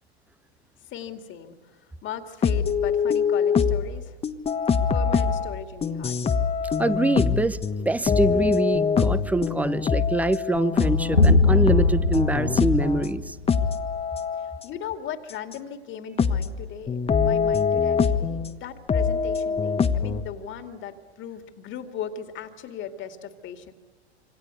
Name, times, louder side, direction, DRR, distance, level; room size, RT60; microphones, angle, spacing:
voice 1, 0.8-4.2 4.9-6.1 14.3-23.7, left 8 dB, 35° left, 7 dB, 2.4 m, -38 dB
sound 1, 2.4-3.9 4.2-13.1 13.5-14.6 15.5-15.6 16.2-16.6 16.9-18.5 18.9-20.2, left 6 dB, 15° left, 1.4 m, -24 dB
voice 2, 6.8-7.6 7.8-13.4, right 2 dB, 5° right, 16 dB, 1.0 m, -24 dB
sound 2, 11.1-13.7, left 3 dB, 90° left, 1.8 m, -21 dB
27.0 x 25.0 x 8.2 m, 1.4 s
figure-of-eight pair, 90°, 33 cm